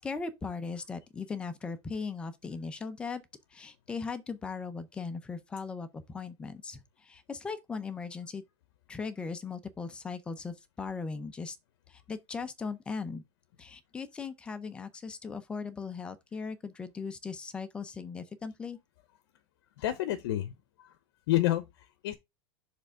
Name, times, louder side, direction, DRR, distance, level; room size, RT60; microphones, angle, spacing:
voice 1, 0.0-3.2 3.5-8.4 8.9-11.6 12.1-13.2 13.6-18.8, left 5 dB, 5° left, 0.5 m, -38 dB
voice 2, 19.8-21.0 21.3-22.2, left 14 dB, 55° left, 0.8 m, -30 dB
6.7 x 3.4 x 4.9 m
supercardioid pair, 175°, 14 cm